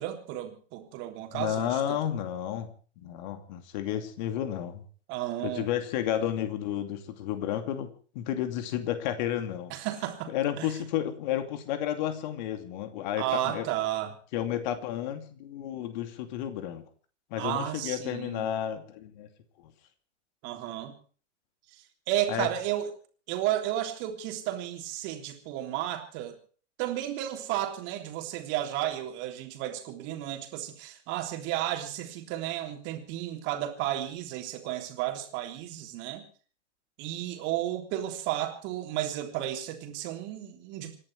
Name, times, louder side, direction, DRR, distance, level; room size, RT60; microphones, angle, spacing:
voice 1, 0.0-2.0 5.1-5.7 9.7-10.7 13.2-14.2 17.4-18.5 20.4-21.0 21.7-22.9 23.3-26.4 26.8-36.2 37.0-41.0, right 13 dB, 30° right, 5 dB, 3.4 m, -33 dB
voice 2, 1.3-2.7 3.0-4.8 5.4-7.9 8.1-9.7 10.3-13.7 14.3-16.9 17.3-19.3 22.3-22.5, left 11 dB, 40° left, 8 dB, 2.6 m, -31 dB
27.0 x 11.5 x 4.7 m, 0.42 s
figure-of-eight pair, 110°, 36 cm